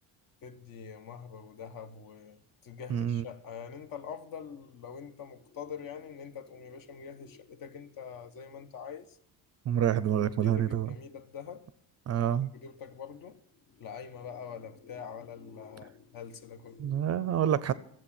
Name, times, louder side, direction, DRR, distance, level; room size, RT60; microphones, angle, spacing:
voice 1, 0.4-9.2 10.2-11.7 12.2-13.4 13.7-17.0, left 7 dB, 50° left, 1.2 m, -44 dB
voice 2, 2.9-3.2 9.7-10.9 12.1-12.5 16.8-17.7, right 10 dB, 35° right, 0.5 m, -27 dB
14.0 x 7.5 x 8.7 m
cardioid pair, 145°, 42 cm